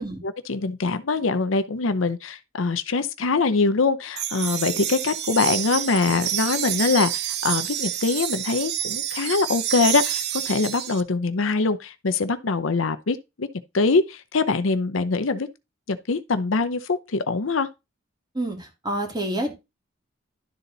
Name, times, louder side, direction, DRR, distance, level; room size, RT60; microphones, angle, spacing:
voice 1, 0.2-13.5 13.7-15.5 15.9-17.7, left 4 dB, 70° left, 0.7 m, -23 dB
sound 1, 4.2-11.0, right 11 dB, 55° right, 0.7 m, -28 dB
voice 2, 18.3-19.5, right 1 dB, 20° right, 2.2 m, -28 dB
12.0 x 4.0 x 4.0 m
head